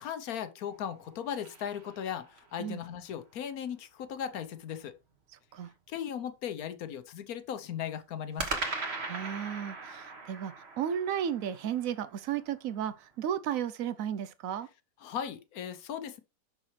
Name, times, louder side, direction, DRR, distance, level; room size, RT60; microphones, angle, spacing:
voice 1, 0.0-4.9 5.9-8.6 15.0-16.2, left 9 dB, 65° left, 1.2 m, -37 dB
sound 1, 0.7-2.6 8.4-12.7, right 3 dB, 40° right, 1.4 m, -40 dB
voice 2, 9.1-14.7, right 9 dB, 70° right, 0.9 m, -34 dB
6.4 x 5.9 x 3.2 m
omnidirectional pair, 1.8 m